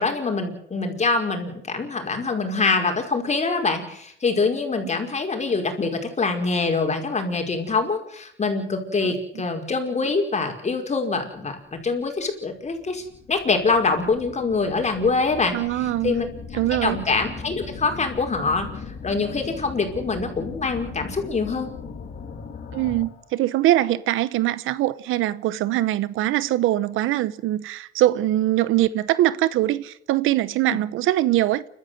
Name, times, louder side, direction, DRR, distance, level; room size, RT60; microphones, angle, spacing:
voice 1, 0.0-16.3 16.8-18.7 19.0-21.7 30.7-30.8, left 4 dB, 35° left, 5.2 m, -24 dB
sound 1, 11.9-12.0 12.6-23.3, left 5 dB, 55° left, 3.7 m, -38 dB
voice 2, 15.5-16.2 16.5-17.0 22.7-31.6, right 14 dB, 90° right, 0.9 m, -22 dB
30.0 x 13.0 x 7.9 m
cardioid pair, 90°, 20 cm